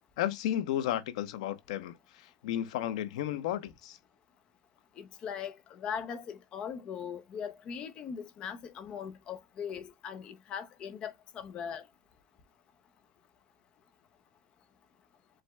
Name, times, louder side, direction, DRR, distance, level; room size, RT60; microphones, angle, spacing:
voice 1, 0.2-4.0, left 11 dB, 85° left, 0.7 m, -33 dB
voice 2, 5.0-11.8, left 7 dB, 30° left, 0.6 m, -40 dB
7.6 x 2.6 x 2.3 m
supercardioid pair, 175°, 3 cm